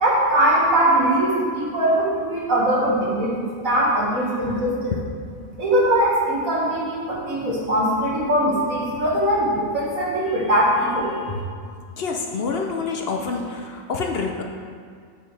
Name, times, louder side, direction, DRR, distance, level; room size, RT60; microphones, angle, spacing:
voice 1, 0.0-3.3 3.6-4.9 5.6-11.1, right 1 dB, 85° right, -5 dB, 2.1 m, -21 dB
voice 2, 12.0-14.4, left 4 dB, 60° left, 2 dB, 0.7 m, -27 dB
8.6 x 7.0 x 3.2 m, 2.1 s
omnidirectional pair, 1.4 m